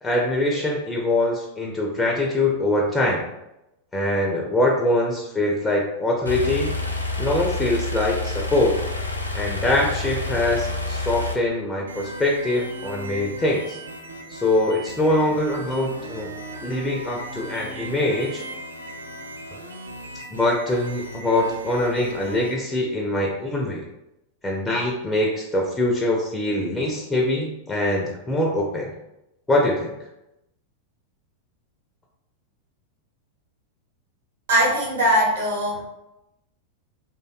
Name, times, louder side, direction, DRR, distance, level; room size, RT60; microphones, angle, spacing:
voice 1, 0.0-3.2 3.9-6.7 7.2-8.7 9.3-13.8 14.3-16.3 16.6-18.4 20.3-23.8 24.4-28.9 29.5-29.9, left 1 dB, 10° left, -2 dB, 0.4 m, -23 dB
sound 1, 6.3-11.3, left 2 dB, 85° left, 0.3 m, -28 dB
sound 2, 11.9-22.5, right 1 dB, 80° right, 0.3 m, -37 dB
voice 2, 34.5-35.8, equal, 60° right, -4 dB, 0.7 m, -20 dB
2.5 x 2.1 x 2.3 m, 0.88 s
figure-of-eight pair, 90°, 0 cm